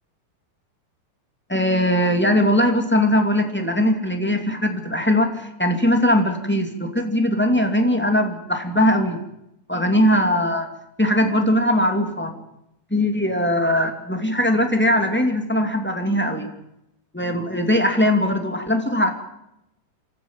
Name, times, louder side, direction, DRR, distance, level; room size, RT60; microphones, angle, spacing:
voice 1, 1.5-9.2 9.7-10.7 11.0-12.3 12.9-16.5 17.1-19.1, left 1 dB, 5° left, 5 dB, 1.8 m, -20 dB
25.5 x 14.5 x 7.4 m, 0.84 s
omnidirectional pair, 4.2 m